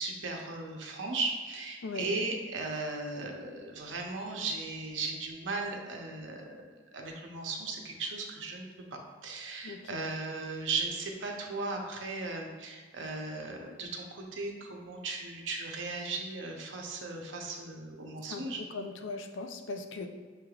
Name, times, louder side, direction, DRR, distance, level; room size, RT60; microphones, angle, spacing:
voice 1, 0.0-6.6 6.9-18.6, right 3 dB, 85° right, 2 dB, 0.6 m, -37 dB
voice 2, 9.6-10.0 18.3-18.4 18.7-20.1, left 3 dB, 80° left, 6 dB, 0.4 m, -39 dB
6.0 x 3.2 x 2.3 m, 1.5 s
head